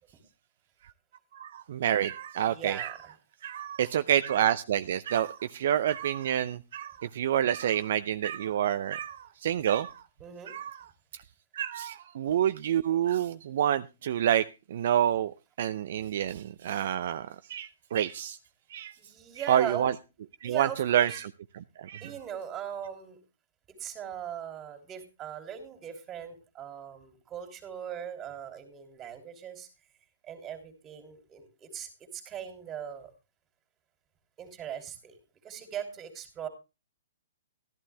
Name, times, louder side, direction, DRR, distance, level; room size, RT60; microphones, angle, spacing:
voice 1, 1.3-3.0 3.4-10.0 10.5-10.8 11.5-18.4 18.7-18.9 19.5-19.9 20.4-21.3 21.5-22.1, right 10 dB, 60° right, 0.6 m, -28 dB
voice 2, 2.4-3.0 10.2-10.5 19.0-19.9 20.4-21.2 22.0-23.2 23.8-29.7 30.2-33.1 34.4-35.2 35.4-36.5, right 9 dB, 20° right, 3.1 m, -40 dB
13.5 x 11.5 x 3.4 m
hypercardioid pair, 145°, 0 cm